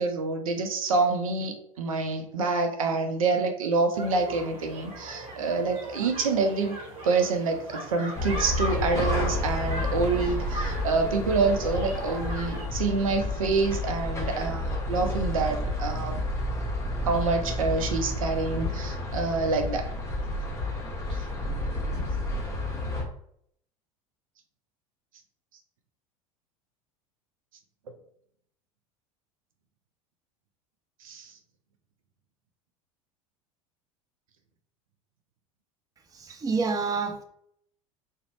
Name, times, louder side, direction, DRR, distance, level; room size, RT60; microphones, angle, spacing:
voice 1, 0.0-6.8 7.0-16.2 17.0-19.9 31.0-31.3, right 3 dB, 80° right, 6 dB, 0.5 m, -27 dB
sound 1, 3.9-12.6, right 1 dB, 35° right, 1.3 m, -38 dB
sound 2, 8.1-23.0, left 1 dB, 15° left, 0.9 m, -30 dB
voice 2, 36.3-37.2, right 4 dB, 20° right, 4 dB, 0.5 m, -27 dB
2.5 x 2.1 x 3.1 m, 0.68 s
hypercardioid pair, 80°, 17 cm